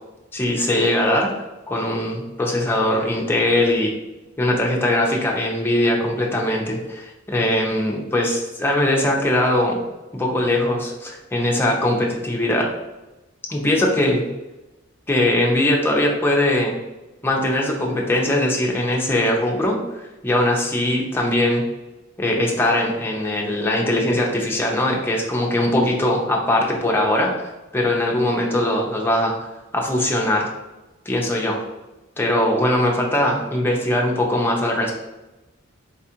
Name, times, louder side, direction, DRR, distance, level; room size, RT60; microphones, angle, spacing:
voice 1, 0.3-1.3 1.7-3.9 4.4-9.8 10.1-12.7 13.5-14.3 15.1-16.8 17.2-21.6 22.2-27.3 27.7-29.3 29.7-30.5 31.1-31.6 32.2-34.9, left 1 dB, 10° left, -1 dB, 0.6 m, -21 dB
4.2 x 2.4 x 2.8 m, 1.1 s
head